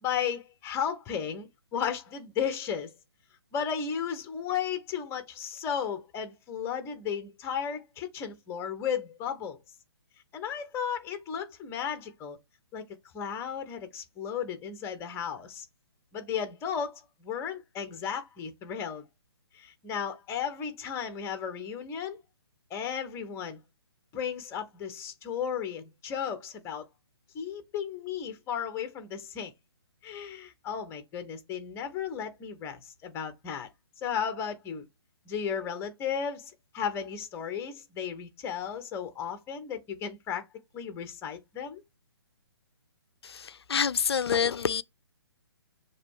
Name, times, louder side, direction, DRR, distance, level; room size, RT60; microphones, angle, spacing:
voice 1, 0.0-2.9 3.5-9.6 10.3-12.4 12.7-12.9 13.1-15.7 16.1-19.0 19.5-22.2 22.7-23.6 24.1-26.9 27.3-29.5 30.0-33.7 34.0-34.8 35.3-40.4 40.7-41.8, left 7 dB, 20° left, 1.1 m, -34 dB
voice 2, 43.2-44.8, left 7 dB, 70° left, 0.5 m, -27 dB
6.6 x 3.1 x 4.6 m
figure-of-eight pair, 135°, 14 cm